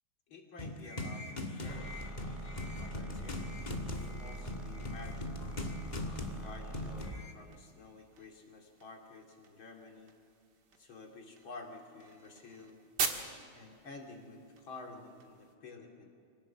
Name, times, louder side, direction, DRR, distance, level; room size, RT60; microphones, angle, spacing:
voice 1, 0.3-2.0 2.8-5.6 6.3-10.1 10.8-12.8 13.6-16.1, left 3 dB, 65° left, 1 dB, 3.6 m, -51 dB
sound 1, 0.6-7.3, left 2 dB, 20° left, 1.6 m, -41 dB
sound 2, 1.7-7.2, right 2 dB, 20° right, 2.9 m, -44 dB
sound 3, 3.8-15.6, right 5 dB, 50° right, 2.2 m, -45 dB
25.0 x 18.0 x 7.5 m, 2.4 s
omnidirectional pair, 2.4 m